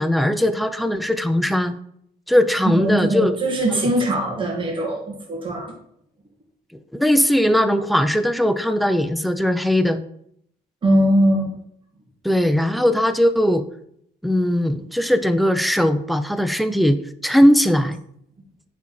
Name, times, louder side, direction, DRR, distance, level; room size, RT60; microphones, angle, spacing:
voice 1, 0.0-1.8 2.3-3.4 3.7-3.9 6.9-10.0 12.2-13.7 14.2-18.0, equal, ahead, 9 dB, 0.6 m, -19 dB
voice 2, 2.7-5.7 10.8-11.5, right 1 dB, 30° right, -1 dB, 2.1 m, -21 dB
9.3 x 4.2 x 4.3 m, 0.70 s
cardioid pair, 110°, 17 cm